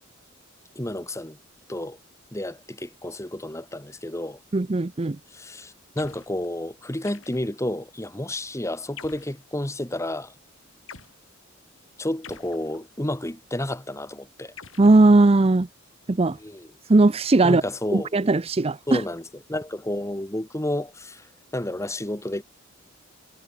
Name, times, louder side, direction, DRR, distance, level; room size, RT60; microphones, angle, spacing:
voice 1, 0.7-1.4 1.7-2.0 2.3-4.4 5.3-10.3 12.0-14.5 16.4-16.7 17.4-18.1 18.9-19.2 19.5-21.2 21.5-22.4, left 1 dB, 15° left, 1.6 m, -31 dB
voice 2, 4.5-5.2 14.8-15.7 16.1-16.4 16.9-17.6 17.9-19.0, right 2 dB, 30° right, 0.5 m, -18 dB
sound 1, 6.0-6.4 7.0-7.7 9.0-9.4 10.9-11.2 12.2-13.1 14.6-15.6, left 6 dB, 75° left, 7.2 m, -47 dB
head